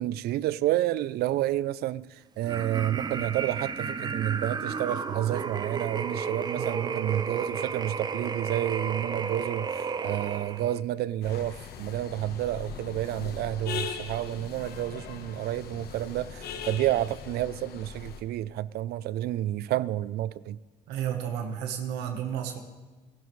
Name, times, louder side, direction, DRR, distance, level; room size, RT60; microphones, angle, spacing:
voice 1, 0.0-20.6, right 13 dB, 70° right, 0.4 m, -30 dB
sound 1, 2.4-10.8, right 5 dB, 25° right, 0.6 m, -33 dB
voice 2, 6.5-7.0 20.9-22.6, right 9 dB, 90° right, 1.2 m, -32 dB
sound 2, 11.2-18.2, left 6 dB, 70° left, 1.1 m, -40 dB
18.5 x 12.0 x 3.1 m
cardioid pair, 110°, 17 cm